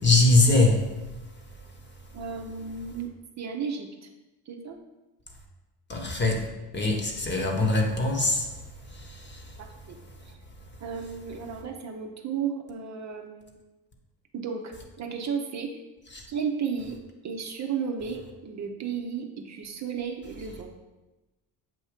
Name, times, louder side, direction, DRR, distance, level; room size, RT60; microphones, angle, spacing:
voice 1, 0.0-0.8 5.9-6.4 6.7-8.5 8.9-9.4 16.1-16.2, left 2 dB, 25° left, 2 dB, 1.1 m, -22 dB
voice 2, 2.1-3.1 3.4-3.9 4.5-4.8 9.6-10.0 10.3-10.4 10.8-13.6 14.3-15.8 16.3-17.0 17.2-20.7, right 6 dB, 45° right, 3 dB, 0.7 m, -33 dB
7.6 x 2.6 x 5.0 m, 1.1 s
supercardioid pair, 90°, 40 cm